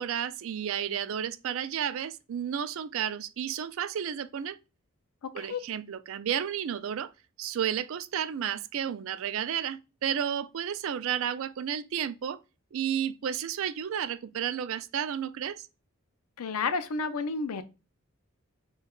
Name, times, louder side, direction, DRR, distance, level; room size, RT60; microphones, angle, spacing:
voice 1, 0.0-4.6 5.3-7.1 7.4-12.4 12.7-15.6, right 9 dB, 65° right, 0.3 m, -32 dB
voice 2, 5.2-5.6 16.4-17.6, left 4 dB, 80° left, 0.5 m, -31 dB
6.4 x 2.3 x 2.3 m
head